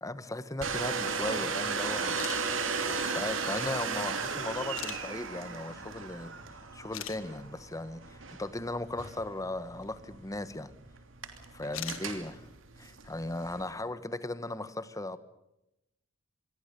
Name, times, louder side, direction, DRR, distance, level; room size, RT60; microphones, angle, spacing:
voice 1, 0.0-2.2 3.0-6.3 6.7-10.7 11.5-12.5 12.8-15.2, left 2 dB, 15° left, 1.2 m, -37 dB
Domestic sounds home sounds, 0.6-13.7, right 5 dB, 70° right, 2.9 m, -36 dB
sound 1, 2.2-2.4 3.5-3.6 4.7-5.0 6.4-6.5 6.9-7.2 9.8-9.9 11.7-12.0, left 11 dB, 85° left, 1.7 m, -39 dB
27.0 x 22.0 x 6.8 m
head